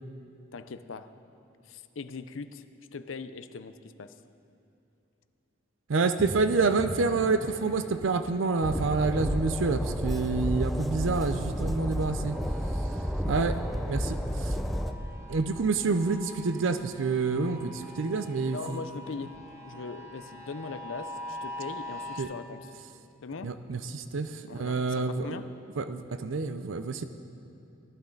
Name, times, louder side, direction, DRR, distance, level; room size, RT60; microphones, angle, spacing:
voice 1, 0.5-1.2 1.6-2.6 2.9-4.1 18.5-19.4 19.6-22.6 23.2-23.5 24.4-25.5, left 4 dB, 80° left, 11 dB, 0.6 m, -40 dB
voice 2, 5.9-12.4 13.2-14.6 15.3-18.8 22.2-22.3 23.4-25.3 25.8-27.0, right 4 dB, 80° right, 9 dB, 0.5 m, -28 dB
sound 1, 6.2-17.2, equal, 20° left, 2.1 m, -47 dB
Train, 8.6-14.9, equal, ahead, 0.5 m, -31 dB
sound 2, 12.3-22.2, equal, 15° right, 1.6 m, -44 dB
18.5 x 11.5 x 3.9 m, 2.9 s
head